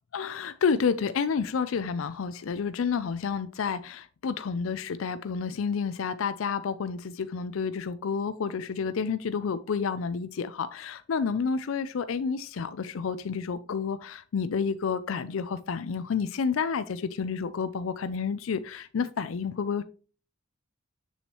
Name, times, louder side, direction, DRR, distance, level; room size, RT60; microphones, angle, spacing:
voice 1, 0.1-19.8, left 6 dB, 80° left, 0.4 m, -30 dB
7.1 x 7.0 x 3.0 m
head